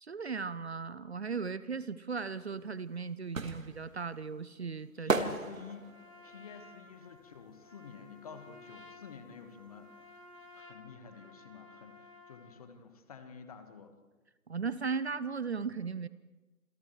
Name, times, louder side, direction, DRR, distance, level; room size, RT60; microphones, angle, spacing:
voice 1, 0.0-5.4 14.5-16.1, right 5 dB, 50° right, 16 dB, 0.7 m, -37 dB
sound 1, 2.5-8.3 8.6-10.2 10.4-10.5, right 4 dB, 65° right, 1.8 m, -36 dB
voice 2, 5.0-5.9 6.2-9.9 10.5-13.9, left 6 dB, 25° left, 8 dB, 1.5 m, -49 dB
Trumpet, 5.4-12.6, left 3 dB, 65° left, 3.5 m, -55 dB
29.5 x 27.5 x 3.3 m, 1.2 s
figure-of-eight pair, 150°, 43 cm